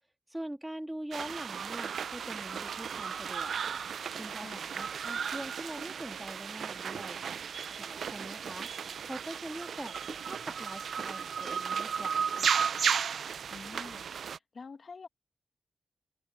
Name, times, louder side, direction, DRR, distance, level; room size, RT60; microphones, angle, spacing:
voice 1, 0.3-3.5 4.2-7.2 7.8-8.7 9.0-12.6, right 1 dB, 10° right, 2.2 m, -43 dB
sound 1, 1.1-14.4, right 7 dB, 80° right, 0.5 m, -35 dB
voice 2, 4.4-4.7 13.5-14.1 14.5-15.1, left 4 dB, 45° left, 1.7 m, -47 dB
wide cardioid pair, 125°, 0 cm